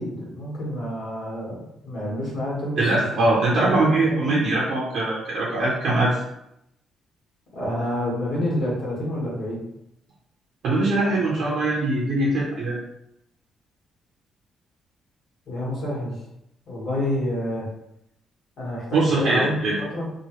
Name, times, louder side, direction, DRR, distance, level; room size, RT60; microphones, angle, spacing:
voice 1, 0.0-3.2 3.5-4.4 7.5-9.6 15.5-16.2 16.7-17.7 18.6-20.1, equal, 65° left, -5 dB, 1.4 m, -28 dB
voice 2, 2.8-6.2 10.6-12.8 18.9-19.8, right 2 dB, 70° right, -5 dB, 0.6 m, -22 dB
2.9 x 2.3 x 3.0 m, 0.81 s
cardioid pair, 90°, 0 cm